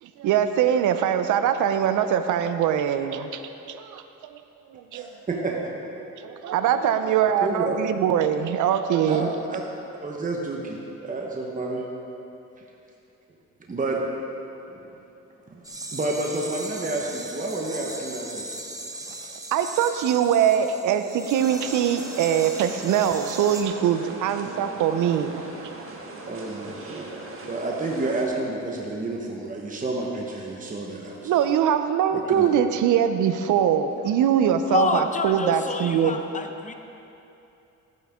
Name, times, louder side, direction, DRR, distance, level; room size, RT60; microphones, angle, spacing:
voice 1, 0.0-4.4 4.7-5.1 5.5-5.6 6.2-9.3 19.2-25.5 31.2-36.2, right 9 dB, 80° right, 9 dB, 0.7 m, -23 dB
voice 2, 4.9-5.5 7.4-7.7 9.1-9.6 10.0-11.8 13.7-14.0 14.7-14.8 15.5-18.5 26.3-31.3 32.1-32.5, right 2 dB, 25° right, -1 dB, 1.2 m, -30 dB
sound 1, 15.6-23.6, right 2 dB, 10° right, 1.0 m, -38 dB
sound 2, 21.3-28.2, right 2 dB, 45° right, 1.6 m, -40 dB
voice 3, 34.7-36.7, left 3 dB, 25° left, 5 dB, 0.9 m, -27 dB
13.5 x 9.4 x 3.7 m, 2.9 s
cardioid pair, 90°, 30 cm